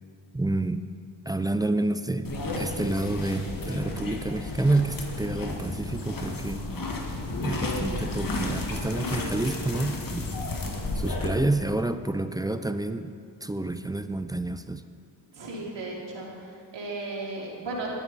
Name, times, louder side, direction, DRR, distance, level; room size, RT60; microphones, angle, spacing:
voice 1, 0.3-0.8 1.3-2.3 2.6-6.6 7.4-10.3 11.0-13.1 13.4-14.8, right 2 dB, 10° right, 10 dB, 0.4 m, -28 dB
sound 1, 2.2-11.3, left 2 dB, 45° left, 1.8 m, -32 dB
voice 2, 15.3-17.9, right 2 dB, 65° right, -3 dB, 2.7 m, -35 dB
11.5 x 10.0 x 4.1 m, 2.2 s
cardioid pair, 60°, 46 cm